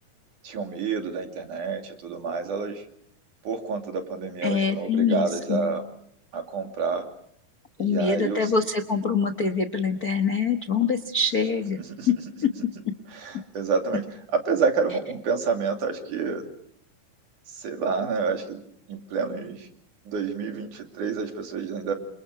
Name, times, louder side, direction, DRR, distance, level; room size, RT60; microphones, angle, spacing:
voice 1, 0.4-2.8 3.4-5.8 6.3-7.1 7.8-8.5 11.8-12.1 13.1-16.5 17.5-18.6 18.9-19.7 20.1-21.9, right 5 dB, 65° right, 4 dB, 4.1 m, -28 dB
voice 2, 4.4-5.8 7.8-11.8 12.1-12.2 12.4-12.5, left 5 dB, 75° left, 6 dB, 0.8 m, -24 dB
29.0 x 27.5 x 4.8 m, 0.69 s
omnidirectional pair, 4.0 m